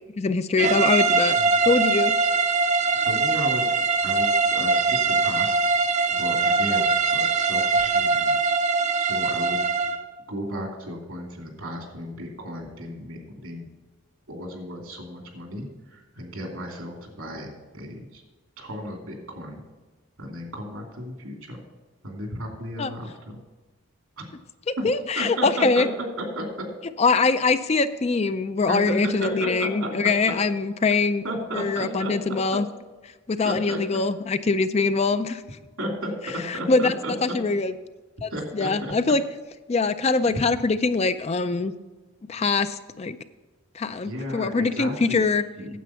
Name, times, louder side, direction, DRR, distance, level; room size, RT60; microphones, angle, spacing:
voice 1, 0.2-1.4 1.7-2.1 6.7-6.8 22.8-22.9 24.7-25.9 27.0-31.2 31.5-32.7 33.3-35.4 36.5-36.9 37.2-37.7 38.2-39.2 39.7-41.7 42.3-43.2 43.7-45.4, left 4 dB, 30° left, 12 dB, 0.4 m, -23 dB
sound 1, 0.6-10.0, right 4 dB, 35° right, 0.5 m, -22 dB
voice 2, 3.1-3.7 4.0-4.3 4.5-5.6 6.1-8.5 9.0-9.6 10.3-13.7 14.3-17.5 17.7-18.2 18.6-19.6 20.2-21.6 22.0-23.4 24.2-24.3 24.8-24.9 25.2-26.6 28.7-29.9 31.2-32.6 33.4-33.8 35.8-36.1 36.5-37.3 38.3-38.7 40.0-40.1 44.0-45.2 45.6-45.8, equal, 85° right, 1 dB, 2.8 m, -34 dB
9.3 x 7.9 x 5.7 m, 1.3 s
head